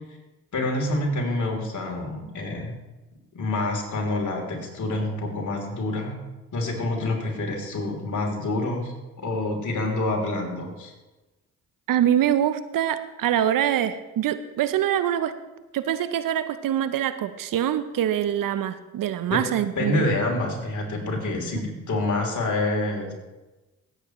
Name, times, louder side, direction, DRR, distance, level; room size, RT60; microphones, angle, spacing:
voice 1, 0.5-2.7 3.3-6.2 6.5-10.9 19.3-19.4 19.8-23.1, left 2 dB, 55° left, 1 dB, 3.4 m, -27 dB
voice 2, 11.9-15.3 15.7-20.0 21.5-21.6, right 10 dB, 65° right, 12 dB, 0.7 m, -24 dB
16.5 x 8.3 x 3.1 m, 1.1 s
supercardioid pair, 50°, 36 cm